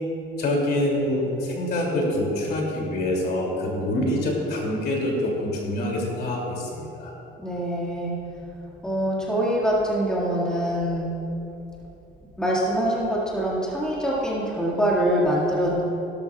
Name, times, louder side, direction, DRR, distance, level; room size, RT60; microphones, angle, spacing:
voice 1, 0.4-7.1, left 1 dB, 50° left, -1 dB, 2.8 m, -25 dB
voice 2, 7.4-8.2 8.8-11.1 12.4-15.8, equal, 5° left, -6 dB, 2.0 m, -24 dB
17.0 x 13.0 x 2.4 m, 2.9 s
cardioid pair, 135°, 21 cm